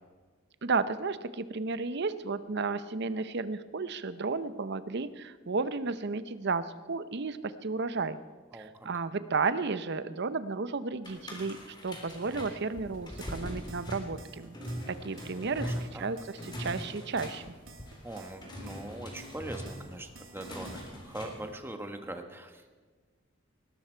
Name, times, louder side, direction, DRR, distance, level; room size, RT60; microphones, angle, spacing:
voice 1, 0.6-8.2 8.5-11.6 11.8-14.6 14.9-16.2 16.4-17.4, right 4 dB, 60° right, 13 dB, 0.7 m, -33 dB
voice 2, 8.5-8.9 15.6-16.1 18.0-22.8, right 1 dB, 10° right, 5 dB, 1.2 m, -42 dB
sound 1, 11.0-21.5, equal, 25° left, 3.4 m, -41 dB
sound 2, 12.9-20.9, right 3 dB, 90° right, 2.2 m, -53 dB
20.0 x 12.5 x 4.5 m, 1.4 s
head